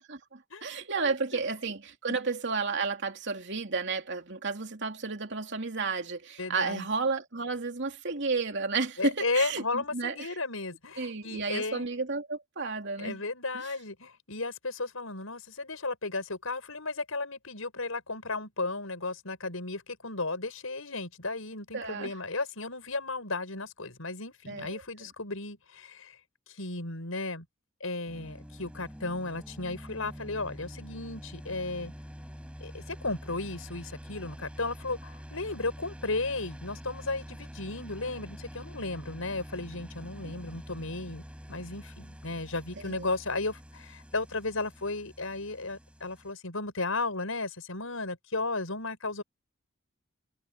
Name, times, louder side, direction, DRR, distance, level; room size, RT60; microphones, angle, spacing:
voice 1, 0.0-10.4 11.0-13.2 13.5-13.7 21.7-22.1 24.5-24.8 40.2-40.4 42.8-43.1, right 4 dB, 60° right, 3.1 m, -32 dB
voice 2, 1.0-1.4 2.1-2.2 6.4-6.9 9.0-11.9 13.0-26.1 26.6-27.5 27.8-31.9 32.6-41.2 41.5-49.2, left 3 dB, 90° left, 5.7 m, -34 dB
sound 1, 28.1-46.3, equal, 5° right, 6.0 m, -46 dB
head